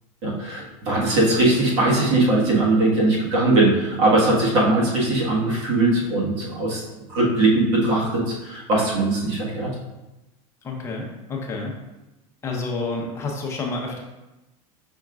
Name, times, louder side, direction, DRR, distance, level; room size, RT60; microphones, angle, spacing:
voice 1, 0.2-6.8 7.1-9.7, right 2 dB, 60° right, -4 dB, 1.5 m, -20 dB
voice 2, 10.6-11.8 12.4-14.0, left 3 dB, 15° left, -1 dB, 0.7 m, -29 dB
5.4 x 3.6 x 2.4 m, 1.0 s
supercardioid pair, 155°, 17 cm